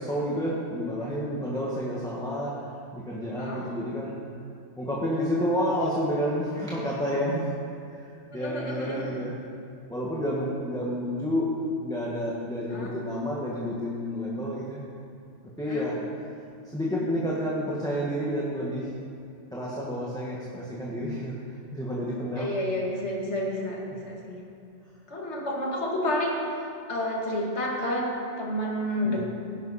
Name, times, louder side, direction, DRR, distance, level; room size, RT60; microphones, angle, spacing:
voice 1, 0.0-2.5 2.9-4.2 4.8-7.5 7.9-9.4 9.9-11.5 11.8-14.9 15.6-16.0 16.7-18.9 19.5-21.4 21.7-22.5 29.0-29.2, equal, 5° left, -6 dB, 1.6 m, -30 dB
voice 2, 3.4-3.7 8.3-9.1 12.7-13.0 15.6-15.9 22.4-24.4 25.1-29.2, left 1 dB, 65° left, -2 dB, 2.4 m, -30 dB
17.0 x 11.0 x 4.3 m, 2.5 s
omnidirectional pair, 1.2 m